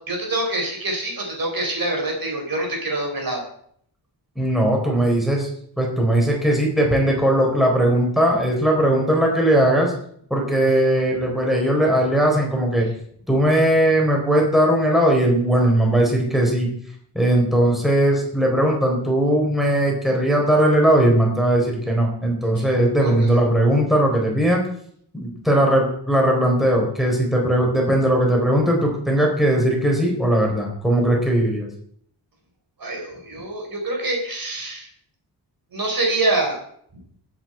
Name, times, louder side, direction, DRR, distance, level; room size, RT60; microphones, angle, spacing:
voice 1, 0.0-3.4 22.4-22.6 23.0-23.4 32.8-34.9 35.7-36.6, right 2 dB, 55° right, 1 dB, 4.5 m, -25 dB
voice 2, 4.4-5.5 5.8-9.9 10.3-12.9 13.3-16.7 17.1-24.6 25.1-31.7, right 1 dB, ahead, -1 dB, 4.2 m, -19 dB
19.5 x 8.6 x 4.5 m, 0.64 s
cardioid pair, 90°, 41 cm